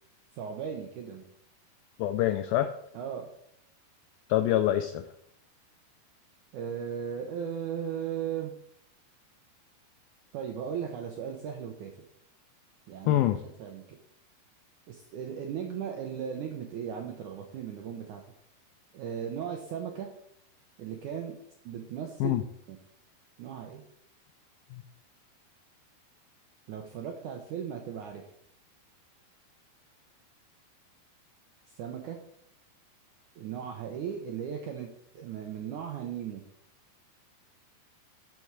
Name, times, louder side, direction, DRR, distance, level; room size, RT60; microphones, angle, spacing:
voice 1, 0.3-1.3 2.9-3.3 6.5-8.6 10.3-11.9 12.9-14.0 14.9-18.2 18.9-20.1 20.8-21.4 21.6-22.4 22.7-22.8 23.4-23.8 26.7-28.2 31.7-32.2 33.4-34.9 35.1-36.4, right 8 dB, 80° right, 3 dB, 1.8 m, -37 dB
voice 2, 2.0-2.7 4.3-5.0 13.1-13.4 22.2-22.4 24.7-24.8, left 13 dB, 85° left, 9 dB, 2.1 m, -25 dB
12.0 x 6.1 x 4.7 m, 0.72 s
omnidirectional pair, 4.7 m